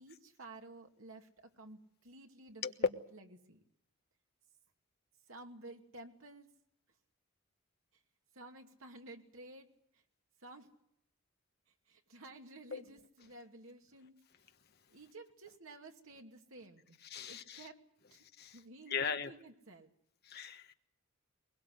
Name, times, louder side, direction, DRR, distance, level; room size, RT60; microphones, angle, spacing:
voice 1, 0.0-3.6 5.3-6.5 8.3-9.7 9.9-10.0 10.4-10.7 11.9-14.1 14.9-17.0 17.3-17.8 18.1-18.2 18.5-19.9, right 2 dB, 90° right, 4 dB, 2.7 m, -53 dB
voice 2, 17.1-17.6 18.4-18.5 18.9-19.3 20.3-20.7, left 7 dB, 50° left, 7 dB, 1.4 m, -38 dB
22.5 x 21.5 x 7.9 m, 0.76 s
head